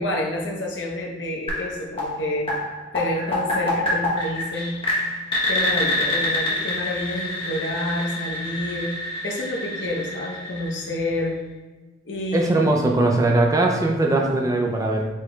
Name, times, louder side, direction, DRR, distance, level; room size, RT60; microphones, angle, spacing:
voice 1, 0.0-2.5 2.9-4.8 5.5-11.4 12.0-13.0, left 1 dB, 65° left, -1 dB, 0.9 m, -28 dB
sound 1, 1.5-11.3, left 1 dB, 30° left, 1.1 m, -27 dB
voice 2, 12.3-15.1, right 2 dB, 20° right, 1 dB, 0.4 m, -20 dB
4.5 x 4.5 x 2.3 m, 1.2 s
head